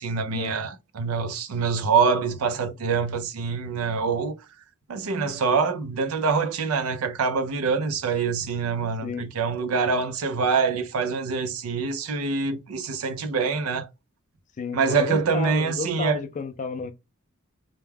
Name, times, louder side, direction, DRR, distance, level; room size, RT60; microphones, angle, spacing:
voice 1, 0.0-4.3 4.9-13.9 14.7-16.2, right 5 dB, 85° right, 0.4 m, -25 dB
voice 2, 14.6-16.9, left 4 dB, 35° left, 0.3 m, -32 dB
2.2 x 2.1 x 3.2 m
head